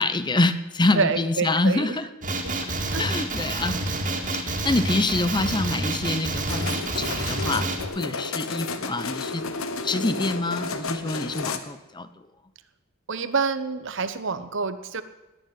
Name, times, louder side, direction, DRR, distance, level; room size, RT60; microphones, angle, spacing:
voice 1, 0.0-2.1 3.0-3.8 4.4-7.7 8.0-9.5 9.8-12.1, left 2 dB, 20° left, 12 dB, 0.8 m, -26 dB
voice 2, 0.9-2.0 2.4-2.5 2.9-3.3 4.1-4.3 13.1-15.0, right 4 dB, 60° right, 12 dB, 1.1 m, -27 dB
Male speech man speaking, 2.2-7.8, right 2 dB, 40° right, 2.6 m, -28 dB
sound 1, 6.5-11.6, left 4 dB, 70° left, 1.3 m, -32 dB
20.0 x 7.6 x 9.3 m, 1.1 s
head